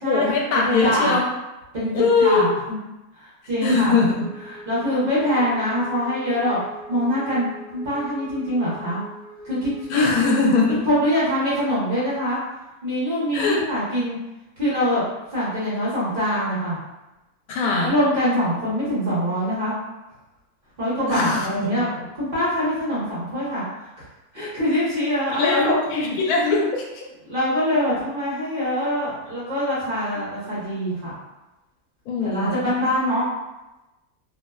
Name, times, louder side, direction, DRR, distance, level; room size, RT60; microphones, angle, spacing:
voice 1, 0.0-1.3 1.9-2.5 3.6-4.3 9.9-10.8 13.3-13.6 17.5-18.0 21.1-22.1 25.3-27.1 32.1-32.9, left 3 dB, 85° left, -1 dB, 1.1 m, -21 dB
voice 2, 0.5-1.2 1.7-2.8 3.1-3.9 4.7-6.6 6.9-7.5 7.7-9.0 9.4-10.0 10.8-12.4 12.8-14.2 14.6-15.0 15.3-16.8 17.8-19.8 20.8-21.9 22.1-23.6 24.0-24.1 24.3-26.0 27.3-31.2 32.2-33.3, equal, 45° right, -9 dB, 0.9 m, -24 dB
Wind instrument woodwind instrument, 3.6-10.1, equal, 75° right, 0.5 m, -43 dB
2.7 x 2.1 x 2.2 m, 0.99 s
omnidirectional pair, 1.5 m